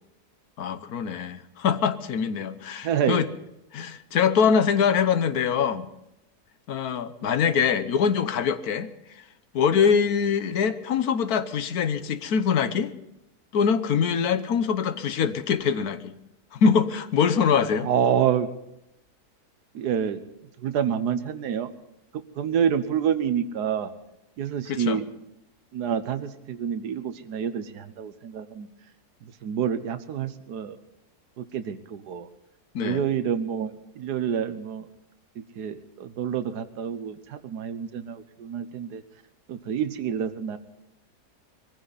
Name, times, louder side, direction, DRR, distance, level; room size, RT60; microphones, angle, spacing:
voice 1, 0.6-3.3 3.7-5.9 6.7-8.9 9.5-12.9 13.5-16.1 16.5-17.9 24.7-25.0 32.7-33.0, left 6 dB, 70° left, 12 dB, 1.4 m, -23 dB
voice 2, 2.8-3.2 17.8-18.5 19.7-20.2 20.6-21.7 22.4-23.9 24.4-25.0 25.7-28.7 29.4-30.8 31.4-32.3 32.8-34.9 35.6-39.0 39.5-40.6, right 8 dB, 90° right, 10 dB, 1.5 m, -27 dB
21.5 x 15.5 x 4.0 m, 0.85 s
omnidirectional pair, 1.7 m